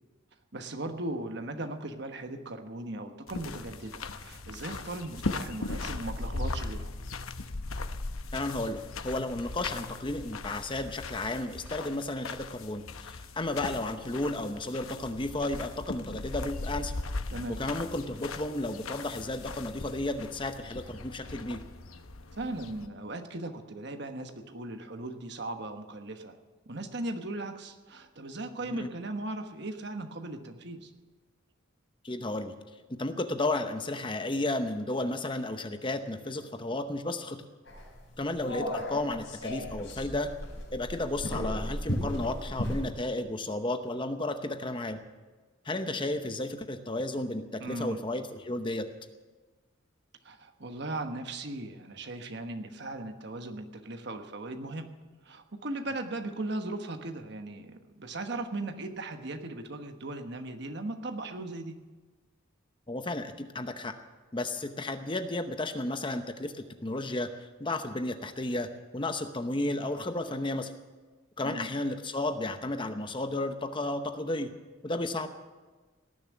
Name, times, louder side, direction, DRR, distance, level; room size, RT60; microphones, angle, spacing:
voice 1, 0.5-6.9 17.3-17.6 22.4-26.4 26.7-30.9 47.6-48.0 50.2-54.9 55.2-61.8 71.4-71.7, right 2 dB, 55° right, 6 dB, 1.2 m, -38 dB
sound 1, 3.3-22.9, left 3 dB, 90° left, 0.9 m, -39 dB
voice 2, 8.3-16.9 17.5-21.6 28.6-28.9 32.0-32.5 32.9-37.4 38.2-40.3 40.7-45.0 45.6-48.9 62.9-63.9 64.3-70.7 71.4-74.5 74.8-75.3, left 2 dB, 25° left, 8 dB, 0.8 m, -33 dB
sound 2, 37.7-42.9, equal, 65° left, 4.6 m, -35 dB
18.5 x 7.3 x 9.7 m, 1.3 s
head